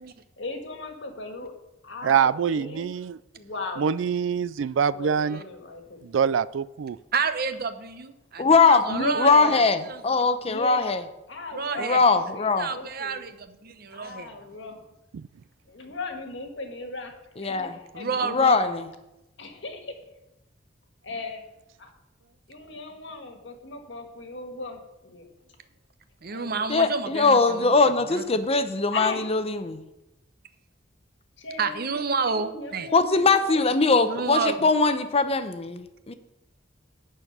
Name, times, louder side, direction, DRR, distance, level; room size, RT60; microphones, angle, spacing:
voice 1, 0.4-1.5 1.8-2.9 3.4-3.9 4.9-6.0 8.9-9.5 10.4-10.9 11.3-13.2 13.9-14.8 15.7-17.1 17.4-17.7 17.9-18.6 19.4-19.9 21.0-21.5 21.8-21.9 22.5-25.3 26.3-26.7 28.9-29.2 31.4-31.9 32.2-34.2, left 2 dB, 70° left, 4 dB, 1.7 m, -37 dB
voice 2, 2.0-3.2 3.8-5.4 6.1-7.0, right 7 dB, 80° right, 18 dB, 0.4 m, -24 dB
voice 3, 7.1-9.6 9.9-10.3 11.5-12.0 12.6-13.3 13.9-14.3 17.9-18.6 26.2-27.7 28.1-28.2 31.6-32.9 34.1-34.7, right 5 dB, 55° right, 9 dB, 0.8 m, -30 dB
voice 4, 8.4-8.8 9.2-11.0 11.8-12.7 17.4-17.8 18.2-18.9 26.7-29.8 32.9-36.1, left 4 dB, 30° left, 9 dB, 0.7 m, -21 dB
11.5 x 4.5 x 8.0 m, 0.93 s
head